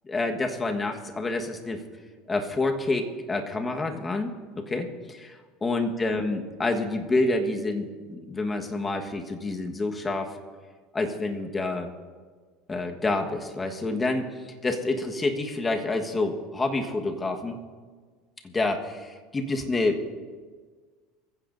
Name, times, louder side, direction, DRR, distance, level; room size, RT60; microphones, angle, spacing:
voice 1, 0.1-1.8 2.3-10.4 10.9-11.9 12.7-17.6 18.4-20.2, left 2 dB, 15° left, 4 dB, 1.3 m, -28 dB
23.5 x 15.0 x 2.6 m, 1.5 s
supercardioid pair, 135°, 0 cm